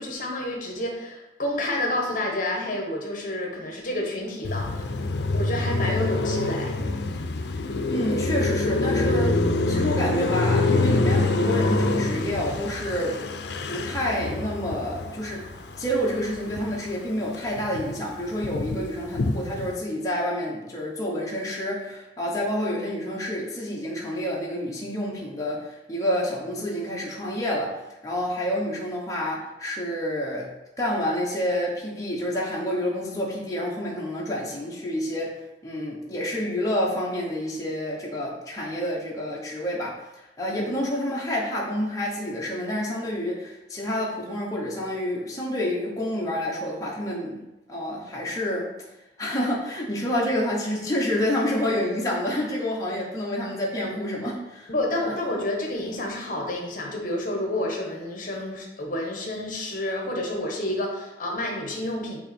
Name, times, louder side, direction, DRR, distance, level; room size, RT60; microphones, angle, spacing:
voice 1, 0.0-5.0 5.3-6.7 54.7-62.2, left 1 dB, 50° left, 0 dB, 1.2 m, -29 dB
Car passing by, 4.4-16.9 17.3-19.8, left 2 dB, 70° left, 0.5 m, -26 dB
voice 2, 7.9-13.2 13.7-15.4 15.8-47.4 47.7-48.7 49.2-55.1, equal, 20° left, -4 dB, 1.0 m, -28 dB
8.6 x 3.0 x 4.3 m, 0.97 s
head